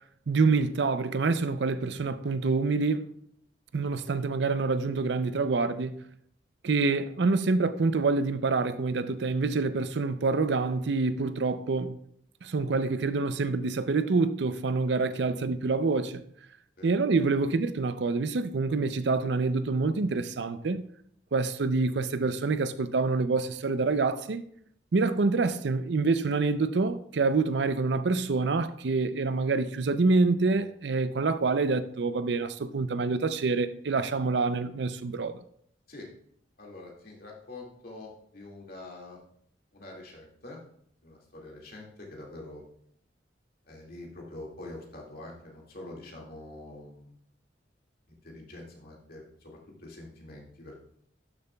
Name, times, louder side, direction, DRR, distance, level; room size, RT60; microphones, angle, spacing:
voice 1, 0.3-3.1 3.7-6.0 6.6-12.0 12.4-16.2 16.8-20.8 21.3-24.4 24.9-35.4, right 3 dB, 70° right, 0.5 m, -26 dB
voice 2, 36.6-39.2 39.7-40.6 41.0-42.6 43.7-47.1 48.2-50.9, left 2 dB, 55° left, 2.1 m, -45 dB
12.0 x 6.8 x 2.3 m
head